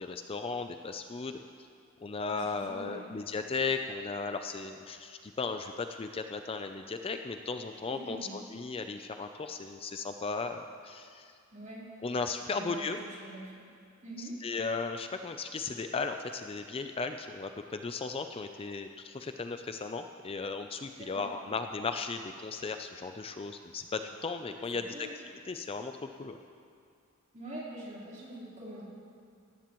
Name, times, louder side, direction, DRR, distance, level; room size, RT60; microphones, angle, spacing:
voice 1, 0.0-1.4 2.0-11.3 12.0-13.0 14.2-25.1 25.5-26.4, left 4 dB, 25° left, 7 dB, 0.4 m, -36 dB
voice 2, 2.3-3.1 7.9-8.4 11.5-11.8 12.5-13.6 14.0-14.4 21.0-21.3 24.5-24.6 24.9-25.2 27.3-28.9, right 1 dB, 35° right, -7 dB, 3.7 m, -44 dB
18.0 x 15.0 x 3.0 m, 2.3 s
head